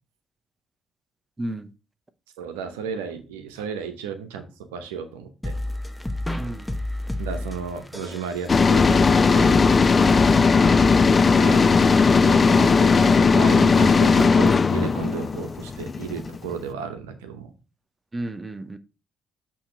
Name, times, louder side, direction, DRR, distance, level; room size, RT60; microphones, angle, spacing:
voice 1, 1.4-1.7 6.4-6.7 10.3-10.6 18.1-18.8, right 1 dB, 25° right, 0.9 m, -32 dB
voice 2, 2.4-4.4 4.7-5.5 7.2-9.5 11.3-11.7 12.2-17.5, right 6 dB, 90° right, 0.8 m, -33 dB
sound 1, 5.4-12.1, left 1 dB, 10° left, 0.9 m, -30 dB
sound 2, 8.5-16.5, left 4 dB, 40° left, 0.4 m, -17 dB
8.4 x 3.1 x 4.9 m
hypercardioid pair, 50°, 0 cm